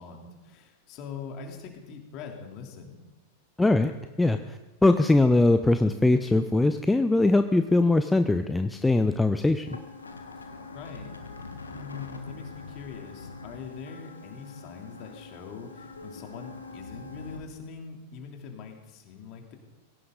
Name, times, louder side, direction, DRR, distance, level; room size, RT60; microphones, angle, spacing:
voice 1, 0.0-3.0 10.4-11.1 11.7-19.5, left 5 dB, 40° left, 2 dB, 3.1 m, -43 dB
voice 2, 3.6-3.9 4.2-9.7, left 2 dB, 5° left, 8 dB, 0.7 m, -21 dB
sound 1, 9.7-17.4, left 3 dB, 75° left, 1.6 m, -43 dB
21.0 x 17.0 x 3.9 m, 1.1 s
figure-of-eight pair, 90°, 0 cm